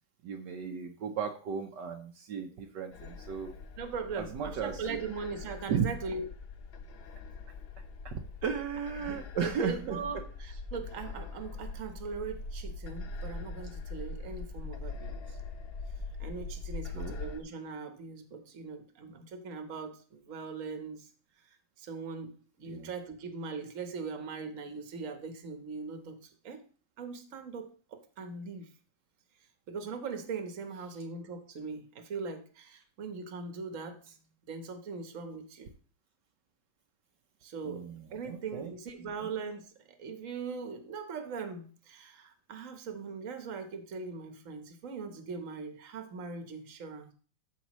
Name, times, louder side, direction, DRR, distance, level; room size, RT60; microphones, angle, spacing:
voice 1, 0.2-3.5 4.2-5.1 5.7-5.9 8.0-10.0 16.9-17.1 22.7-22.9 37.6-38.7 39.2-39.3, right 7 dB, 70° right, 3 dB, 1.5 m, -35 dB
sound 1, 2.9-17.4, left 3 dB, 65° left, 0.6 m, -42 dB
voice 2, 3.8-6.3 9.0-15.4 16.2-21.1 21.4-26.6 27.0-28.7 29.4-35.7 37.4-47.1, right 4 dB, 50° right, 7 dB, 1.5 m, -40 dB
13.5 x 5.2 x 3.1 m, 0.39 s
omnidirectional pair, 2.0 m